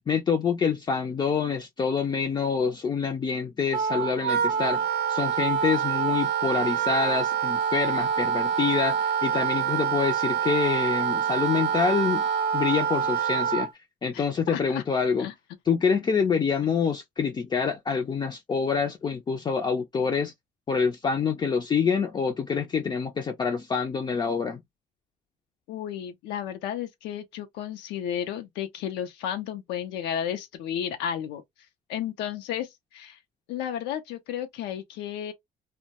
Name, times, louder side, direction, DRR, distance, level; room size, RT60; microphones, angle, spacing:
voice 1, 0.1-4.8 5.1-12.2 12.5-13.7 14.0-15.3 15.7-20.3 20.7-24.6, left 6 dB, 25° left, 0.4 m, -26 dB
Wind instrument woodwind instrument, 3.7-13.7, right 8 dB, 75° right, 0.5 m, -26 dB
voice 2, 14.1-14.8 15.2-15.3 25.7-31.4 31.9-33.2 33.5-35.3, left 9 dB, 90° left, 0.5 m, -33 dB
2.2 x 2.1 x 2.7 m
cardioid pair, 110°, 17 cm